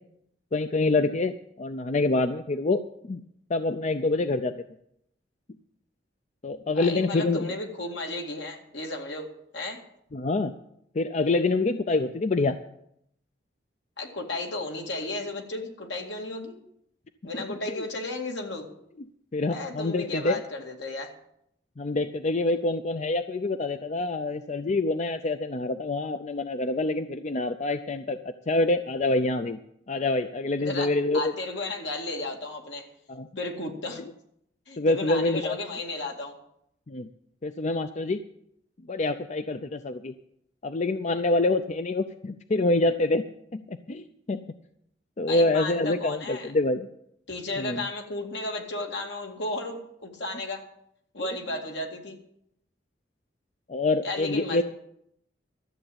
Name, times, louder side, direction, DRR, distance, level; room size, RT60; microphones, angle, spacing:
voice 1, 0.5-2.8 3.1-3.2 3.5-4.5 6.4-7.5 10.1-10.5 10.9-12.6 17.3-17.8 19.3-20.4 21.8-29.6 29.9-31.3 33.1-33.3 34.8-35.6 36.9-37.1 37.4-38.2 38.9-40.1 40.6-43.2 43.5-44.4 45.2-46.9 47.6-47.9 51.2-51.3 53.7-54.6, left 2 dB, 40° left, 10 dB, 0.5 m, -26 dB
voice 2, 6.7-9.3 9.5-9.8 14.0-16.6 17.2-18.7 19.5-21.1 30.6-32.9 33.4-34.0 34.7-36.4 45.3-46.5 47.3-50.6 51.1-52.2 54.0-54.6, left 2 dB, 75° left, 2 dB, 2.3 m, -34 dB
13.5 x 7.7 x 8.6 m, 0.74 s
head